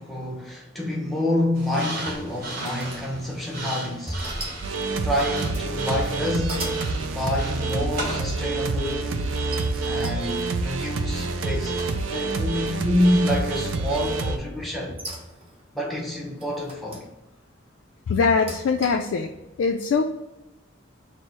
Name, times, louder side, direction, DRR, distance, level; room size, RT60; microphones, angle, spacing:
voice 1, 0.0-4.2 5.0-9.3 9.8-15.0 15.7-17.1, left 1 dB, ahead, 0.7 m, -27 dB
sound 1, 1.5-8.2, right 2 dB, 50° right, 1.3 m, -36 dB
sound 2, 1.8-3.5 4.1-4.7 5.1-5.7 6.2-6.9 8.2-8.7 9.5-12.4 12.8-13.3 14.6-15.6 16.4-17.1 18.2-19.1, right 1 dB, 30° right, 0.8 m, -39 dB
sound 3, 4.6-14.4, right 3 dB, 80° right, 0.4 m, -27 dB
voice 2, 18.1-19.3 19.6-20.0, left 5 dB, 80° left, 0.3 m, -22 dB
4.5 x 2.0 x 4.4 m
head